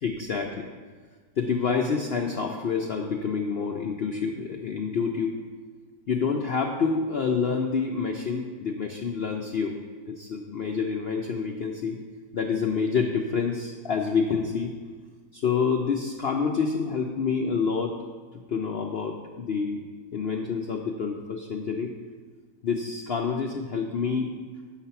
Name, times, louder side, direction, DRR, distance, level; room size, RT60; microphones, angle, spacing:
voice 1, 0.0-0.7 1.4-5.4 6.1-9.7 10.1-12.0 12.3-14.7 15.3-18.0 18.5-19.8 20.1-21.9 22.6-24.4, left 5 dB, 70° left, 2 dB, 0.5 m, -27 dB
8.0 x 5.8 x 5.7 m, 1.5 s
omnidirectional pair, 1.8 m